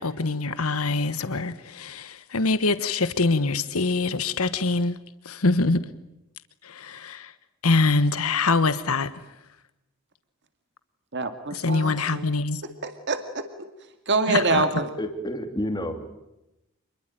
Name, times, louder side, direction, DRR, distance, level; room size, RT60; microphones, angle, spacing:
voice 1, 0.0-5.0 5.2-5.8 6.6-7.3 7.6-9.1 11.5-12.6 14.3-14.6, left 3 dB, 85° left, 1.2 m, -24 dB
voice 2, 11.1-12.3 12.8-13.4 14.1-14.9, right 3 dB, 55° right, 2.2 m, -25 dB
voice 3, 15.0-16.2, equal, 20° left, 2.6 m, -30 dB
27.5 x 21.5 x 9.0 m
head